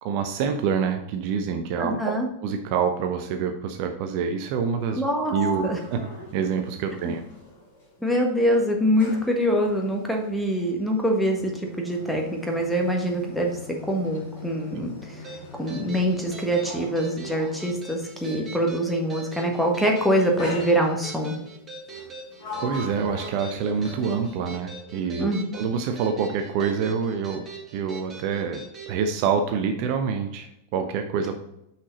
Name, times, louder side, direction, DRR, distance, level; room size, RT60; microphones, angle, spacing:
voice 1, 0.0-2.1 2.4-5.0 5.3-6.1 6.3-7.2 22.6-27.4 27.7-31.4, right 6 dB, 45° right, 6 dB, 0.6 m, -26 dB
voice 2, 1.8-2.3 5.0-5.3 5.6-5.8 7.0-7.1 8.0-15.2 15.6-21.4 25.2-25.5, equal, ahead, 1 dB, 1.5 m, -24 dB
Sliding door, 4.8-8.1 8.4-18.6 19.4-19.8 20.4-21.3 21.9-24.4, left 1 dB, 55° left, 2.9 m, -40 dB
sound 1, 15.2-28.9, right 3 dB, 20° right, 1.6 m, -43 dB
6.1 x 5.8 x 4.1 m, 0.82 s
figure-of-eight pair, 90°, 0 cm